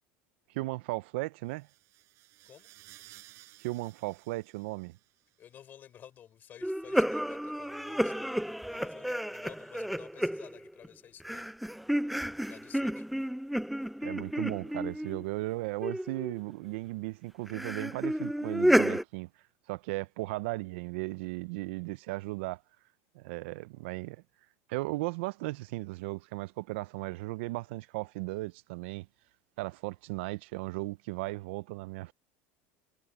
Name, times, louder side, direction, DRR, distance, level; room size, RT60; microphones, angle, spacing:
voice 1, 0.5-1.7 3.6-5.0 14.0-19.3 19.7-22.6 23.1-24.2 24.7-29.1 29.6-32.1, right 21 dB, 80° right, 0.4 m, -36 dB
metallic whee effect, 1.5-5.4, right 18 dB, 50° right, 5.4 m, -56 dB
voice 2, 5.4-11.5 12.5-13.1, left 10 dB, 30° left, 4.4 m, -53 dB
sound 1, 6.6-10.9 11.2-15.3 15.8-16.4 17.5-19.0, equal, ahead, 0.3 m, -31 dB
cardioid pair, 155°, 6 cm